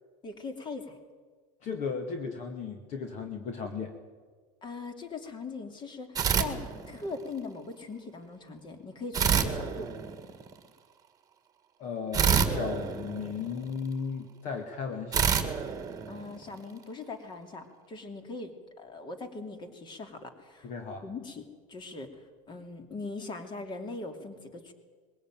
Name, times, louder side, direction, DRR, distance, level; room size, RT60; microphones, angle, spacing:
voice 1, 0.2-1.0 4.6-9.9 16.1-20.7 21.0-24.7, left 3 dB, 25° left, 7 dB, 2.9 m, -41 dB
voice 2, 1.6-3.9 11.8-15.3 20.6-21.1, left 5 dB, 40° left, 5 dB, 2.0 m, -35 dB
sound 1, 6.1-7.3 9.1-10.5 12.1-13.8 15.1-16.7, right 7 dB, 20° right, 2.0 m, -28 dB
21.5 x 17.0 x 9.1 m, 1.5 s
supercardioid pair, 140°, 18 cm